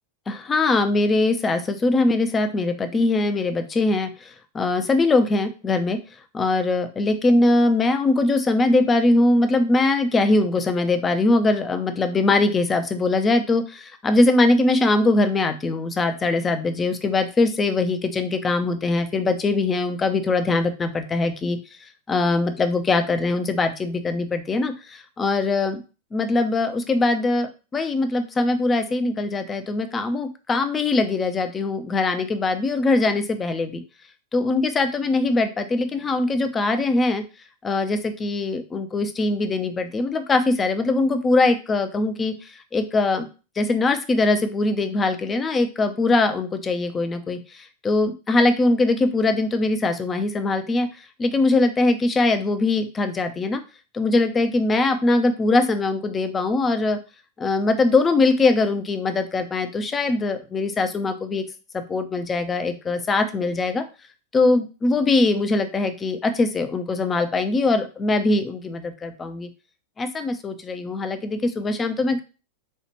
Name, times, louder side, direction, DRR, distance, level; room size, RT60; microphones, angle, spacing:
voice 1, 0.3-6.0 6.3-21.6 22.1-25.8 26.1-33.8 34.3-37.2 37.6-43.3 43.6-50.9 51.2-53.6 53.9-57.0 57.4-61.4 61.7-63.8 64.3-69.5 70.0-72.2, left 2 dB, 20° left, 8 dB, 0.5 m, -22 dB
4.3 x 2.4 x 3.0 m, 0.32 s
figure-of-eight pair, 90°, 0 cm